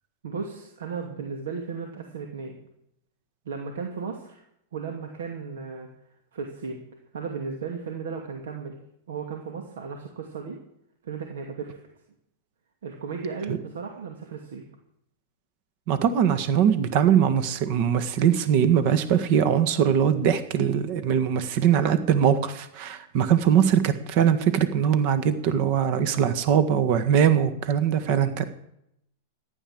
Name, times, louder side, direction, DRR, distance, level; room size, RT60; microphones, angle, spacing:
voice 1, 0.2-2.5 3.4-4.4 4.7-5.9 6.3-6.8 7.1-8.8 9.1-10.6 11.0-11.8 12.8-14.6, right 5 dB, 85° right, 3 dB, 2.5 m, -35 dB
voice 2, 15.9-28.4, right 8 dB, 50° right, 11 dB, 1.7 m, -21 dB
14.5 x 11.5 x 7.9 m, 0.77 s
supercardioid pair, 140°, 0 cm